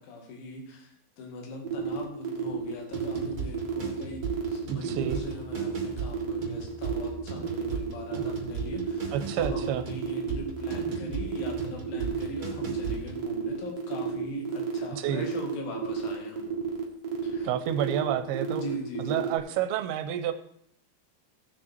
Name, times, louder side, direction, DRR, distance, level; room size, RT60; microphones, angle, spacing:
voice 1, 0.0-16.5 17.2-17.5 18.5-19.3, left 1 dB, 65° left, 2 dB, 3.6 m, -40 dB
sound 1, 1.6-19.4, right 7 dB, 55° right, 2.1 m, -32 dB
sound 2, 2.9-13.3, right 6 dB, 35° right, 2.9 m, -38 dB
voice 2, 4.7-5.2 8.1-8.3 9.1-9.8 14.9-15.3 17.4-18.6 19.1-20.3, right 10 dB, 90° right, 9 dB, 2.6 m, -29 dB
17.5 x 6.4 x 4.5 m, 0.68 s
omnidirectional pair, 4.5 m